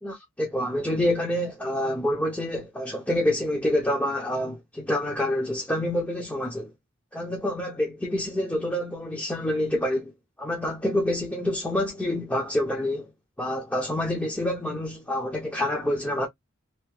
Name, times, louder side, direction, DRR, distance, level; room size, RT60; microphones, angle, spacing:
voice 1, 0.0-6.7 7.1-10.1 10.4-13.1 13.4-16.3, left 1 dB, 5° left, 0.7 m, -27 dB
2.9 x 2.7 x 3.1 m
head